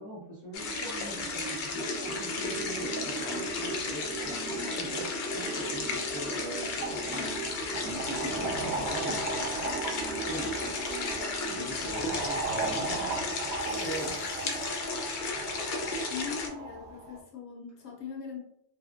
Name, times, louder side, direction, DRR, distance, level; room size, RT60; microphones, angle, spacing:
voice 1, 0.0-7.3 7.8-9.4 10.3-10.8 11.5-13.3 13.6-14.2, right 1 dB, 20° left, -7 dB, 0.7 m, -41 dB
sound 1, 0.5-16.5, left 3 dB, 60° left, 0.6 m, -34 dB
sound 2, 1.7-11.7, right 2 dB, ahead, 0.4 m, -40 dB
sound 3, 6.8-17.2, right 3 dB, 70° right, 0.9 m, -37 dB
voice 2, 16.1-18.4, left 7 dB, 80° left, -1 dB, 0.9 m, -40 dB
3.0 x 2.4 x 2.4 m, 0.78 s
omnidirectional pair, 1.1 m